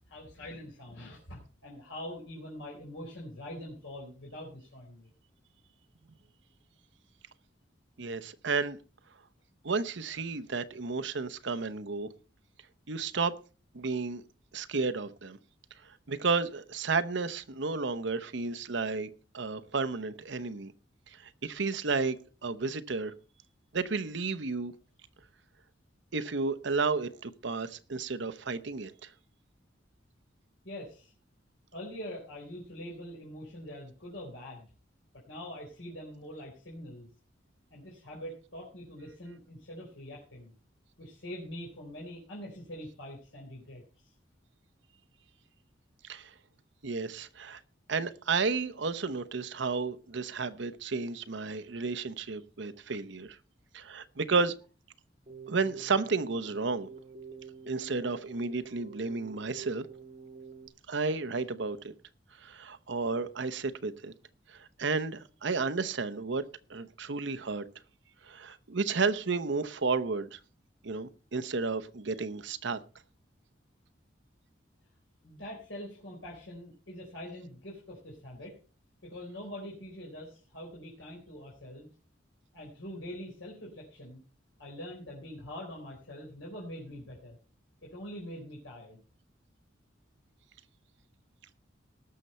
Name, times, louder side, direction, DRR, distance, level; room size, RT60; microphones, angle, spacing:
voice 1, 0.1-5.1 30.6-31.1 31.7-34.7 35.3-37.1 37.7-40.5 41.0-44.1 75.2-78.6 79.0-81.9 82.5-84.2 84.6-87.4 87.8-89.0, left 1 dB, 80° left, 4.1 m, -44 dB
voice 2, 8.0-8.8 9.6-12.1 12.9-13.3 13.7-14.2 14.5-15.4 16.1-20.7 21.4-23.1 23.7-24.7 26.1-29.1 46.1-46.3 46.8-47.6 47.9-53.4 53.7-54.5 55.5-56.9 57.7-59.9 60.9-61.9 62.4-64.1 64.5-66.4 66.7-67.6 68.3-70.4 70.8-72.8, right 4 dB, 70° right, 0.9 m, -32 dB
Keyboard (musical), 55.3-60.7, right 5 dB, 40° right, 1.4 m, -48 dB
19.0 x 6.8 x 4.3 m
head